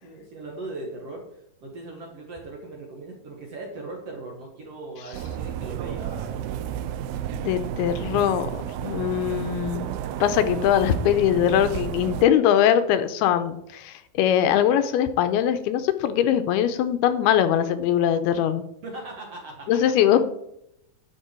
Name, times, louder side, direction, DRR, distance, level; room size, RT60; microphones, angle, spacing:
voice 1, 0.0-6.8 18.8-19.8, right 2 dB, 55° right, 0 dB, 1.9 m, -39 dB
sound 1, 5.1-12.2, right 10 dB, 80° right, 2.5 m, -32 dB
voice 2, 7.3-8.5 8.8-9.9 10.2-18.6 19.7-20.3, left 10 dB, 85° left, 10 dB, 2.6 m, -21 dB
11.0 x 7.5 x 4.4 m, 0.78 s
omnidirectional pair, 4.6 m